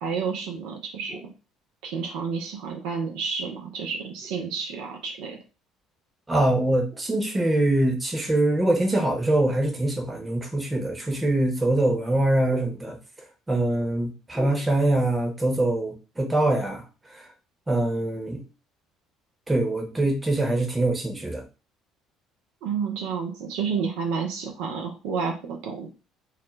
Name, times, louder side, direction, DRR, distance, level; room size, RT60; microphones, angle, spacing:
voice 1, 0.0-1.3 1.8-5.4 22.6-25.9, right 5 dB, 75° right, 2 dB, 0.5 m, -30 dB
voice 2, 6.3-13.0 13.5-16.8 17.1-17.3 17.7-18.4 19.5-21.4, right 1 dB, 15° right, 2 dB, 0.9 m, -23 dB
2.4 x 2.1 x 3.1 m, 0.32 s
hypercardioid pair, 65°, 0 cm